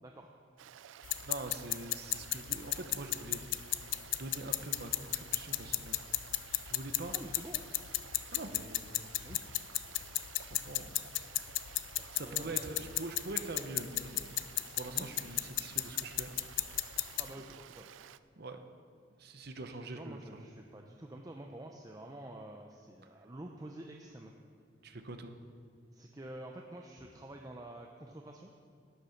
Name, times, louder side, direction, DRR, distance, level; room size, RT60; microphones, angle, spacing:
Stream, 0.6-18.2, right 9 dB, 70° right, 0.3 m, -53 dB
sound 1, 1.0-17.3, left 15 dB, 70° left, 0.4 m, -36 dB
voice 1, 1.2-3.6 4.1-7.2 8.3-9.1 10.5-10.9 12.1-17.4 18.4-18.6 19.2-20.4 24.8-25.3, right 2 dB, 55° right, 7 dB, 0.9 m, -44 dB
voice 2, 7.1-7.6 9.2-9.6 12.0-12.8 14.9-15.1 17.2-17.9 19.6-24.3 25.9-28.5, right 1 dB, 20° right, 2 dB, 0.6 m, -48 dB
11.5 x 9.6 x 5.8 m, 2.2 s
head